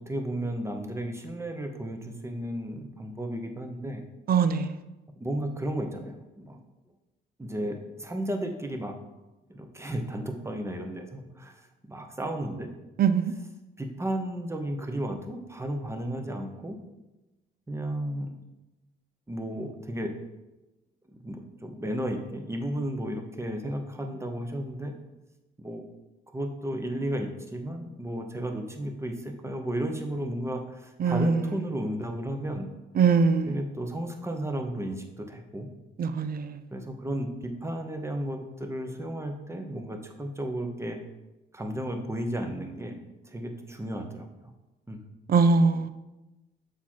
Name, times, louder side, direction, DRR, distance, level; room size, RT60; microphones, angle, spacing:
voice 1, 0.0-4.0 5.2-6.6 7.4-9.0 9.5-11.6 11.8-12.7 13.8-16.8 17.7-18.3 19.3-20.1 21.1-24.9 25.6-25.8 26.3-32.7 33.5-35.7 36.7-37.3 37.6-41.0 41.5-44.5 44.9-45.0, right 1 dB, 15° right, 4 dB, 1.0 m, -33 dB
voice 2, 4.3-4.8 13.0-13.3 31.0-31.6 33.0-33.6 36.0-36.6 45.3-45.9, right 5 dB, 50° right, 12 dB, 0.6 m, -23 dB
6.9 x 4.4 x 4.5 m, 1.0 s
cardioid pair, 90°, 20 cm